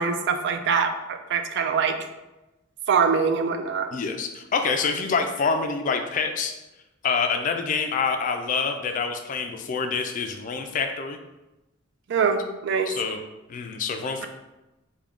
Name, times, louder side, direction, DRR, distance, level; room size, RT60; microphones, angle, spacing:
voice 1, 0.0-2.0 2.9-3.9 12.1-12.9, right 6 dB, 55° right, 6 dB, 0.3 m, -23 dB
voice 2, 3.9-6.5 7.0-11.2 12.9-13.2 13.5-14.3, left 5 dB, 40° left, 5 dB, 0.3 m, -26 dB
3.6 x 2.2 x 3.5 m, 1.0 s
head